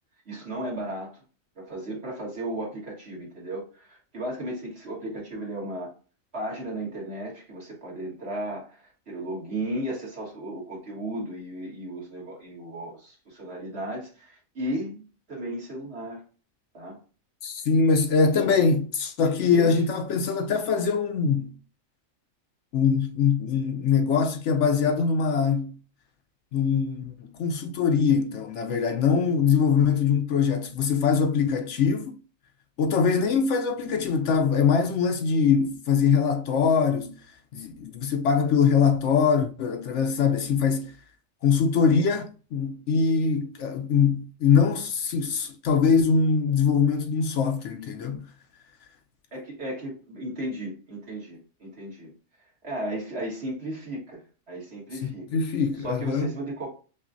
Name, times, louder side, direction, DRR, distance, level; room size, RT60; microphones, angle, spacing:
voice 1, 0.3-1.1 1.6-5.9 6.3-16.2 16.7-17.0 19.2-19.8 49.3-52.1 52.6-54.2 54.5-55.3 55.8-56.7, right 1 dB, 50° right, 1.9 m, -35 dB
voice 2, 17.4-21.5 22.7-25.7 26.5-32.2 32.8-37.2 37.5-40.9 41.4-48.3 55.0-56.3, left 6 dB, 70° left, 0.9 m, -23 dB
5.5 x 2.4 x 2.6 m
omnidirectional pair, 1.4 m